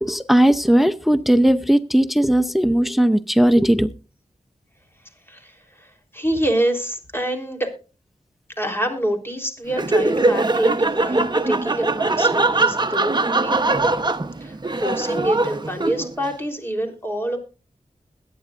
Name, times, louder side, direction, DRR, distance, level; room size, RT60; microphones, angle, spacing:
voice 1, 0.0-3.9, right 1 dB, ahead, 12 dB, 0.7 m, -17 dB
voice 2, 5.3-7.7 8.6-13.5 14.4-17.4, right 1 dB, 15° left, 3 dB, 3.7 m, -26 dB
Laughter, 9.7-16.3, right 2 dB, 30° right, 1.0 m, -21 dB
21.5 x 9.5 x 2.5 m, 0.34 s
wide cardioid pair, 60°, 14 cm